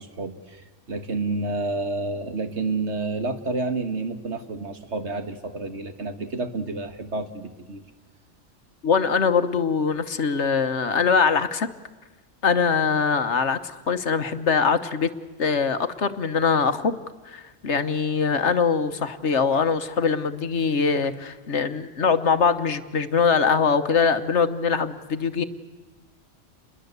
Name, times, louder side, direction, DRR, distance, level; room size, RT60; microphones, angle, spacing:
voice 1, 0.0-7.8, right 3 dB, 65° right, 8 dB, 1.9 m, -29 dB
voice 2, 8.8-11.7 12.4-15.1 15.4-17.0 17.3-25.4, left 5 dB, 65° left, 11 dB, 1.4 m, -22 dB
28.5 x 21.5 x 8.2 m, 1.2 s
omnidirectional pair, 1.3 m